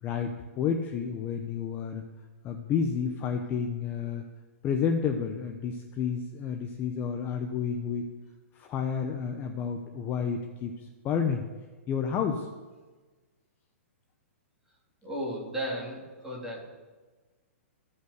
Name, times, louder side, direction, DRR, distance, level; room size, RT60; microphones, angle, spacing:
voice 1, 0.0-2.1 2.4-4.2 4.6-8.1 8.5-11.5 11.9-12.5, left 6 dB, 25° left, 5 dB, 0.8 m, -30 dB
voice 2, 15.0-16.6, equal, 5° right, -5 dB, 3.1 m, -34 dB
14.5 x 5.6 x 6.6 m, 1.3 s
hypercardioid pair, 140°, 8 cm